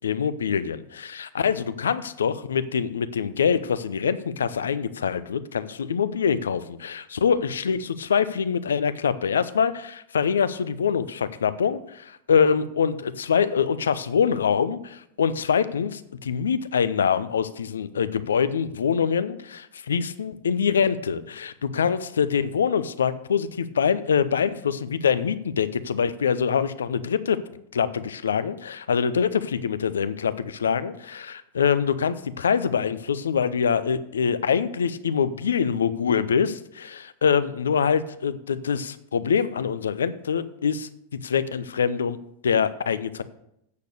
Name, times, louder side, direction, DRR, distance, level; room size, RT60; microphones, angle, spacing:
voice 1, 0.0-27.4 27.7-40.9 41.2-42.2 42.4-43.2, left 7 dB, 75° left, 13 dB, 0.6 m, -24 dB
8.5 x 6.6 x 6.7 m, 0.77 s
figure-of-eight pair, 95°, 0 cm